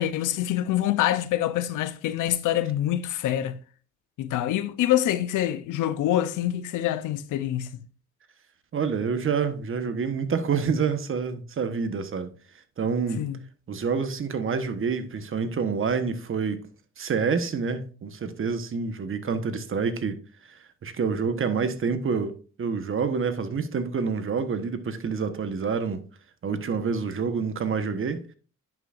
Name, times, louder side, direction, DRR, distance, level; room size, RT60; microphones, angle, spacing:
voice 1, 0.0-3.6 4.2-7.8 13.2-13.4, left 12 dB, 85° left, 0.7 m, -26 dB
voice 2, 8.7-12.3 12.8-13.2 13.7-16.7 17.0-20.2 20.5-26.0 26.4-28.2, right 5 dB, 45° right, 1.2 m, -27 dB
10.5 x 6.0 x 2.5 m
cardioid pair, 90°, 30 cm